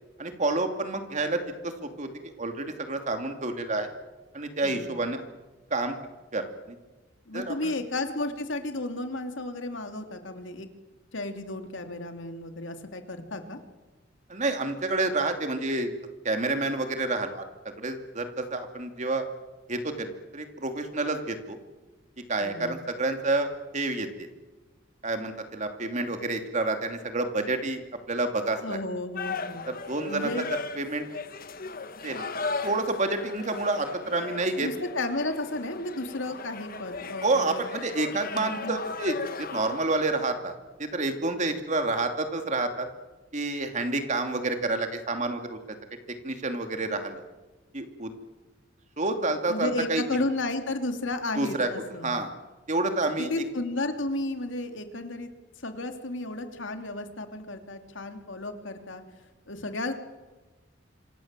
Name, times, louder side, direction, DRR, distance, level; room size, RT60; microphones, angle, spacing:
voice 1, 0.2-3.9 4.3-5.2 5.7-6.0 6.3-6.8 7.3-7.8 14.3-15.9 16.2-17.4 17.8-19.3 19.7-21.6 22.3-24.3 25.0-27.8 28.1-28.8 29.7-30.3 30.8-31.1 32.0-32.3 32.6-34.7 37.2-40.5 40.8-42.9 43.3-45.6 46.2-47.2 47.7-48.1 49.0-50.0 51.4-51.7 52.0-52.3 52.7-53.4, right 2 dB, 40° right, 6 dB, 2.7 m, -29 dB
voice 2, 4.6-4.9 7.3-10.7 11.1-13.6 22.4-22.8 28.6-29.6 30.0-30.5 34.6-37.7 38.3-38.8 49.5-52.2 53.2-55.3 55.6-59.0 59.5-59.9, left 2 dB, 85° left, 6 dB, 2.8 m, -33 dB
sound 1, 29.2-39.9, left 4 dB, 50° left, 1.5 m, -37 dB
26.5 x 25.5 x 7.5 m, 1.2 s
head